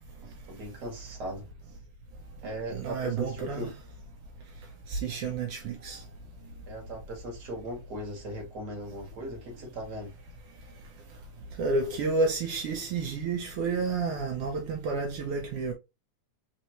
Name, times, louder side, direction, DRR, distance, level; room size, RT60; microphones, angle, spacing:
voice 1, 0.5-1.5 2.4-3.7 6.7-10.1, equal, 40° right, 2.0 m, -38 dB
voice 2, 2.7-3.7 4.9-6.0 11.6-15.7, right 4 dB, 75° right, 1.3 m, -30 dB
4.3 x 3.6 x 3.0 m
omnidirectional pair, 3.4 m